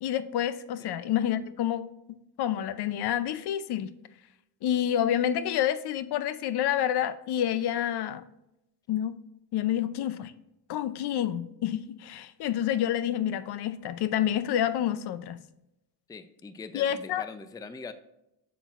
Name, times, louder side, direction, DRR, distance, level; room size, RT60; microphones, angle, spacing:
voice 1, 0.0-1.9 2.4-3.9 4.6-8.2 8.9-9.1 9.5-10.3 10.7-15.4 16.7-17.3, left 10 dB, 75° left, 14 dB, 0.6 m, -28 dB
voice 2, 16.1-17.9, left 4 dB, 10° left, 11 dB, 0.4 m, -42 dB
8.1 x 6.1 x 2.4 m, 0.87 s
cardioid pair, 105°, 40 cm